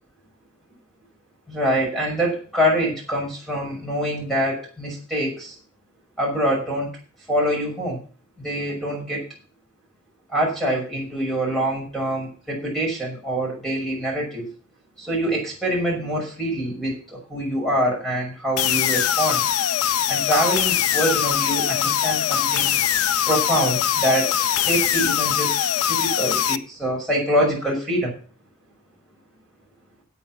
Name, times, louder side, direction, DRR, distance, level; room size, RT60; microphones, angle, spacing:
voice 1, 1.5-5.5 6.2-6.9 7.3-8.0 8.4-9.2 10.3-14.5 15.0-19.4 20.1-22.8 23.3-24.3 24.6-25.5 25.9-28.1, equal, ahead, -2 dB, 5.8 m, -25 dB
sound 1, 18.6-26.6, left 10 dB, 80° left, 0.6 m, -22 dB
9.5 x 8.4 x 7.3 m, 0.37 s
head